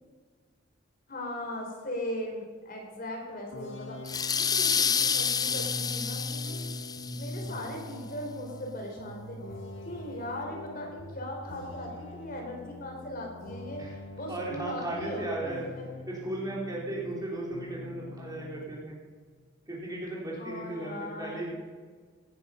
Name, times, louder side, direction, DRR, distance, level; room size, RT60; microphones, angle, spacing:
voice 1, 1.1-6.8 7.1-9.4 9.9-15.9 20.4-21.5, left 1 dB, 50° left, 1 dB, 3.7 m, -39 dB
sound 1, 3.5-17.3 17.5-18.7, left 1 dB, 90° left, 1.6 m, -42 dB
sound 2, 4.1-7.5, left 7 dB, 20° left, 0.5 m, -29 dB
voice 2, 14.3-15.7 16.1-19.0 19.7-21.5, right 2 dB, 20° right, -4 dB, 3.6 m, -36 dB
17.5 x 10.0 x 5.6 m, 1.5 s
head